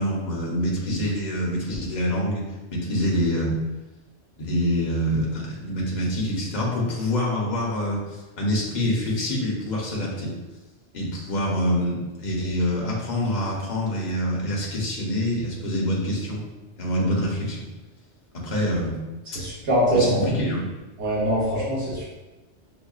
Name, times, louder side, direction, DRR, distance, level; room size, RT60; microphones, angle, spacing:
voice 1, 0.0-2.4 2.7-3.6 4.4-8.0 8.4-10.3 10.9-16.4 16.8-17.6 18.3-19.0 19.9-20.8, equal, 40° left, -3 dB, 0.9 m, -25 dB
voice 2, 19.3-20.2 21.0-22.0, right 1 dB, 70° right, -9 dB, 1.3 m, -23 dB
6.0 x 2.3 x 2.4 m, 1.1 s
omnidirectional pair, 1.2 m